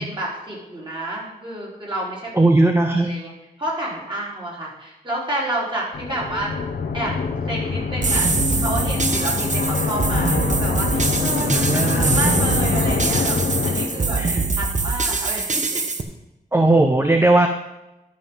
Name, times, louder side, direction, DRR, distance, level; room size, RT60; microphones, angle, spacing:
voice 1, 0.0-2.3 2.9-3.3 3.6-6.5 6.9-7.1 7.5-11.6 12.0-15.8, right 1 dB, 30° right, -5 dB, 4.2 m, -30 dB
voice 2, 2.4-3.1 11.5-12.2 14.2-14.4 16.5-17.5, right 2 dB, 15° right, 5 dB, 0.7 m, -17 dB
sound 1, 5.9-14.4, left 4 dB, 85° left, 0.9 m, -24 dB
sound 2, 8.0-16.0, right 4 dB, 50° right, 1.0 m, -23 dB
11.5 x 5.4 x 5.5 m, 0.95 s
cardioid pair, 70°, 16 cm